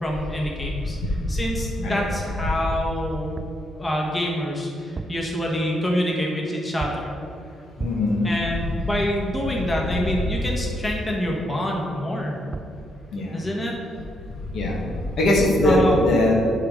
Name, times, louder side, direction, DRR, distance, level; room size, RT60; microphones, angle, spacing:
voice 1, 0.0-1.0 1.3-3.3 3.8-7.1 8.2-12.4 13.3-13.7 15.6-16.0, equal, 15° left, -2 dB, 1.4 m, -26 dB
sound 1, 3.4-3.7 4.8-5.3 6.8-7.2 7.8-8.2 12.2-12.3 12.5-12.9, right 3 dB, 35° right, 0.3 m, -34 dB
voice 2, 7.8-8.2 13.1-13.4 14.5-14.8 15.2-16.3, left 1 dB, 70° left, -1 dB, 1.6 m, -20 dB
8.4 x 3.8 x 6.5 m, 2.7 s
cardioid pair, 90°, 0 cm